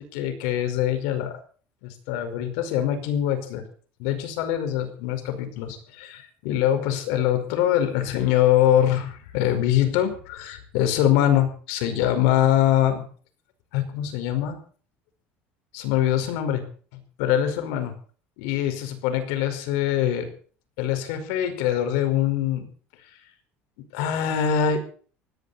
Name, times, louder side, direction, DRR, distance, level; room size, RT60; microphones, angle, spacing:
voice 1, 0.0-1.4 1.8-3.7 4.0-13.0 13.7-14.6 15.7-16.6 16.9-17.9 18.4-20.3 20.8-22.7 23.9-24.8, left 11 dB, 90° left, 8 dB, 5.1 m, -23 dB
19.5 x 17.0 x 4.4 m, 0.43 s
cardioid pair, 170°, 5 cm